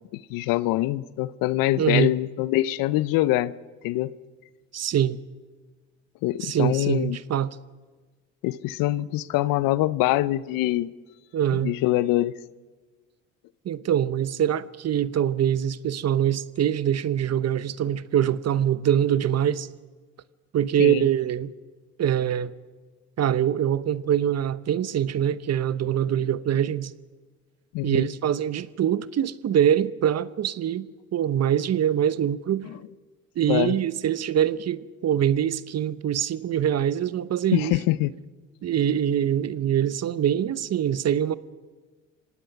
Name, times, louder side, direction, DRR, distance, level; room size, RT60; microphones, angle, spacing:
voice 1, 0.1-3.5 3.8-4.1 6.2-7.2 8.4-10.9 11.5-12.3 20.8-21.0 27.7-28.1 32.6-32.8 33.5-33.8 37.5-38.1, left 16 dB, 75° left, 0.8 m, -24 dB
voice 2, 1.8-2.1 4.7-5.2 6.4-7.6 11.3-11.8 13.6-19.7 20.5-21.5 22.0-22.5 23.2-26.9 27.8-32.7 33.4-37.8 38.6-41.3, right 10 dB, 45° right, 0.9 m, -24 dB
25.0 x 18.0 x 5.9 m
hypercardioid pair, 65°, 35 cm